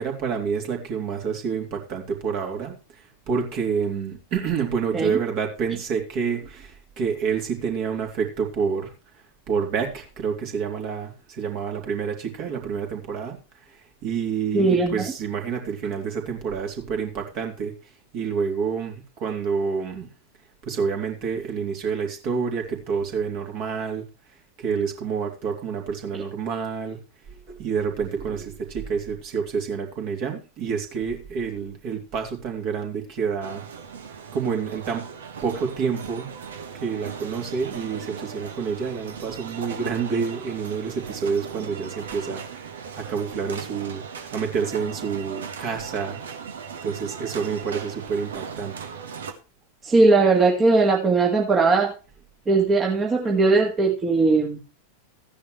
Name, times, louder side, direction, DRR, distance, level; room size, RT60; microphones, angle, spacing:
voice 1, 0.0-8.9 9.5-13.4 13.7-17.7 18.1-20.1 20.6-24.1 24.6-27.0 27.3-33.6 34.3-35.1 35.4-36.3 36.7-42.4 42.9-46.4 46.8-48.9, right 6 dB, 45° right, 2 dB, 3.1 m, -28 dB
voice 2, 14.5-15.0 49.8-51.9 52.5-54.6, right 3 dB, 20° right, 1 dB, 1.8 m, -19 dB
sound 1, 33.4-49.3, right 6 dB, 65° right, 1.4 m, -38 dB
14.5 x 10.0 x 3.2 m, 0.32 s
figure-of-eight pair, 90°, 0 cm